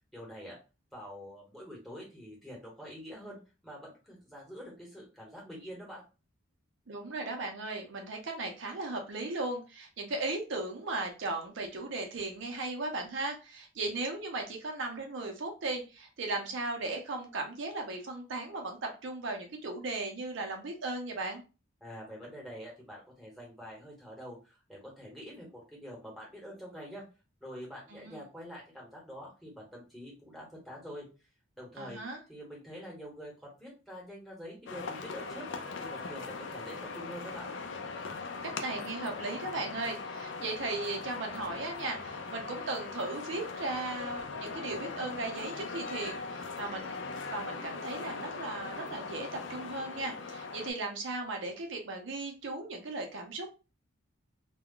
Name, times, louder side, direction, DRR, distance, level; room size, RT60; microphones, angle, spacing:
voice 1, 0.1-0.6 0.9-3.4 3.6-6.0 21.8-27.1 27.4-31.1 31.6-32.0 32.3-35.5 35.8-37.5, equal, ahead, -4 dB, 1.1 m, -46 dB
voice 2, 6.9-21.4 27.9-28.2 31.8-32.2 38.4-47.0 47.3-53.5, right 2 dB, 70° right, 3 dB, 0.6 m, -37 dB
sound 1, 34.7-50.7, left 4 dB, 65° left, 0.4 m, -40 dB
2.3 x 2.1 x 3.6 m, 0.31 s
head